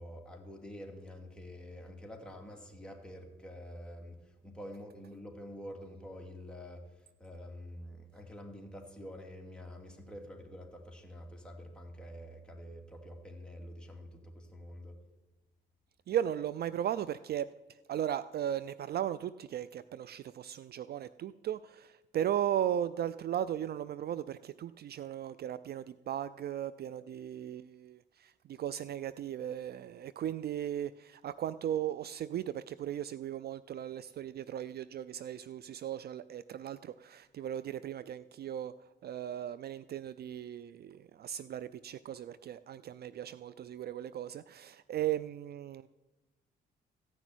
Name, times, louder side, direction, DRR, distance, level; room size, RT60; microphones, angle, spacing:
voice 1, 0.0-15.0, equal, 5° left, 0 dB, 2.4 m, -47 dB
voice 2, 16.1-17.5 17.9-45.9, right 10 dB, 55° right, 16 dB, 0.4 m, -37 dB
14.5 x 6.2 x 9.1 m, 1.1 s
cardioid pair, 90°, 20 cm